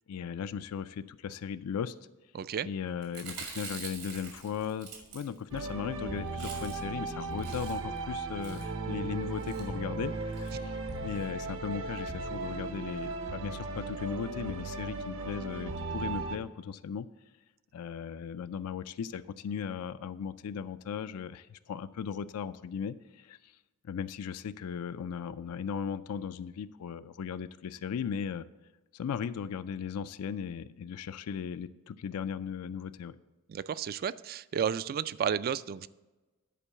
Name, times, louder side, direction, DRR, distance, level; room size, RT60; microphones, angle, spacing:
voice 1, 0.1-1.9 2.6-17.1 17.7-23.5 23.8-28.5 28.9-33.2, left 7 dB, 75° left, 12 dB, 0.4 m, -37 dB
voice 2, 2.3-2.7 33.5-35.9, right 8 dB, 40° right, 18 dB, 0.3 m, -32 dB
Chewing mastication, 3.0-5.7 6.0-6.1 6.3-7.0 7.3-8.0 8.4-8.7 9.4-9.7 10.3-10.5 10.9-11.0 11.2-11.3, right 5 dB, 80° right, 2.5 m, -45 dB
sound 1, 5.5-16.4, right 3 dB, 60° right, 0.8 m, -37 dB
10.0 x 4.5 x 6.8 m, 1.1 s
head